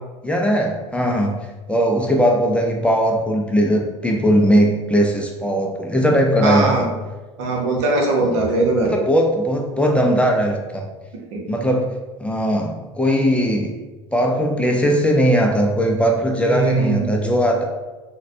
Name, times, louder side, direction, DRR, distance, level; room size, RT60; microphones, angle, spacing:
voice 1, 0.2-1.3 1.7-6.8 8.8-10.8 11.5-11.9 12.2-13.7 14.1-17.6, equal, 5° left, 0 dB, 0.4 m, -19 dB
voice 2, 6.4-6.9 7.4-9.0 11.3-11.5 16.4-17.1, right 2 dB, 65° right, 0 dB, 0.8 m, -20 dB
4.0 x 2.2 x 2.6 m, 1.2 s
hypercardioid pair, 80°, 16 cm